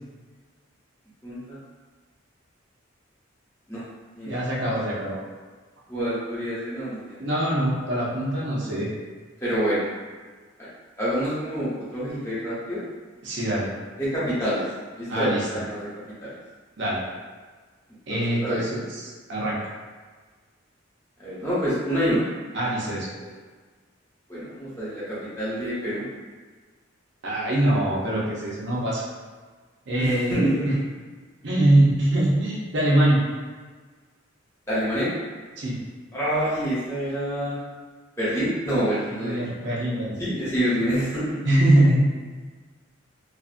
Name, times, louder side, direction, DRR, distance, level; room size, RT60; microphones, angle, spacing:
voice 1, 1.2-1.6 3.7-3.8 4.1-4.4 4.7-4.9 5.9-7.2 9.4-9.9 11.0-12.8 14.0-14.7 14.9-15.9 16.2-16.3 18.1-18.6 21.2-22.3 23.2-23.3 24.3-26.0 30.0-30.8 34.7-35.1 36.1-37.6 38.2-39.4 40.2-41.4, equal, 15° left, -10 dB, 0.9 m, -27 dB
voice 2, 4.3-5.2 7.2-8.9 13.2-13.7 15.1-15.6 16.8-17.0 18.1-19.6 22.5-23.1 27.2-29.0 29.9-30.7 31.4-33.2 35.6-35.8 39.1-40.2 40.7-40.9 41.4-42.1, right 1 dB, 60° right, -5 dB, 0.7 m, -23 dB
2.5 x 2.4 x 2.5 m, 1.4 s
head